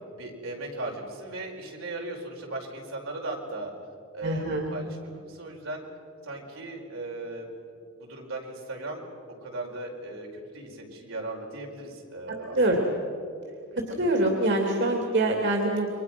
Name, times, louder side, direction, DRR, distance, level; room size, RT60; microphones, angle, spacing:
voice 1, 0.2-3.7 4.1-5.9 6.2-7.5 8.0-9.0 9.4-12.6 13.7-14.1, right 2 dB, 85° right, 0 dB, 4.9 m, -37 dB
voice 2, 4.2-4.6 12.5-12.8 13.9-16.0, right 1 dB, 60° right, 2 dB, 2.7 m, -24 dB
29.0 x 24.0 x 6.1 m, 2.4 s
head